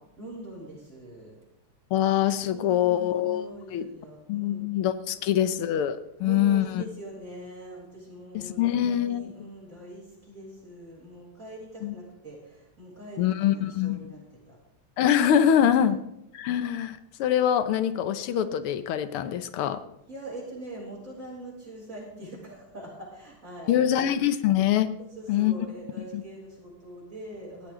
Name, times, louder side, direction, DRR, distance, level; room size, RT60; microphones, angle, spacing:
voice 1, 0.2-1.3 2.5-4.7 5.2-5.4 6.2-14.6 15.6-15.9 20.1-23.9 25.1-27.7, right 1 dB, 35° right, -4 dB, 7.4 m, -43 dB
voice 2, 1.9-3.4 3.7-3.9 4.3-6.8 8.3-9.3 11.8-12.0 13.2-14.0 15.0-16.0 16.3-19.8 23.7-24.9 25.3-25.5 26.1-26.2, left 10 dB, 85° left, 12 dB, 1.8 m, -24 dB
18.5 x 14.0 x 3.8 m, 0.84 s
omnidirectional pair, 2.4 m